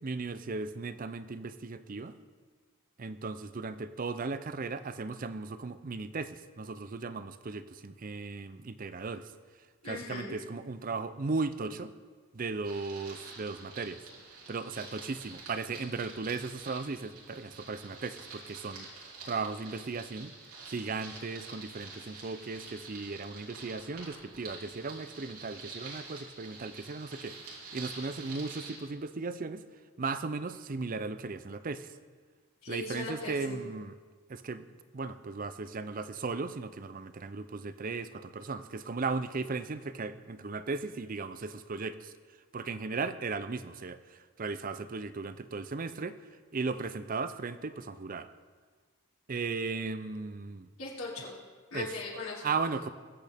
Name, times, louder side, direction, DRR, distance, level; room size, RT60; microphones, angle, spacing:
voice 1, 0.0-2.1 3.0-9.3 9.8-11.9 12.3-14.0 14.5-20.3 20.7-27.4 27.7-29.6 30.0-31.9 32.7-33.9 34.3-34.7 34.9-42.1 42.5-46.2 46.5-48.3 49.3-50.7 51.7-51.9 52.4-52.9, right 4 dB, 40° right, 12 dB, 0.5 m, -36 dB
voice 2, 9.8-10.4 32.6-33.6 50.8-51.3 51.7-52.4, left 3 dB, 70° left, -6 dB, 3.2 m, -39 dB
sound 1, 12.6-28.8, right 3 dB, 90° right, 3.2 m, -47 dB
22.0 x 7.9 x 3.5 m, 1.5 s
head